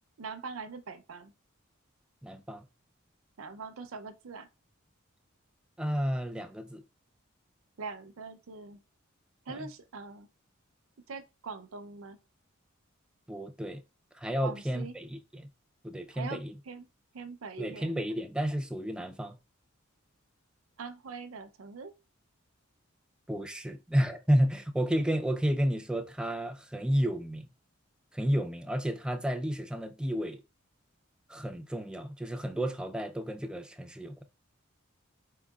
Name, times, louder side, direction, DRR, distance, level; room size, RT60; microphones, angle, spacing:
voice 1, 0.2-1.3 3.4-4.5 7.8-8.8 9.5-10.3 11.1-12.2 14.4-15.0 16.1-16.9 17.1-18.0 20.8-21.9, right 4 dB, 85° right, 0.6 m, -42 dB
voice 2, 2.2-2.6 5.8-6.8 9.5-9.6 13.3-13.8 14.2-15.5 15.8-16.5 17.6-19.4 23.3-27.5 28.1-30.4 31.3-34.2, equal, 5° right, 0.4 m, -31 dB
4.3 x 3.7 x 2.3 m
head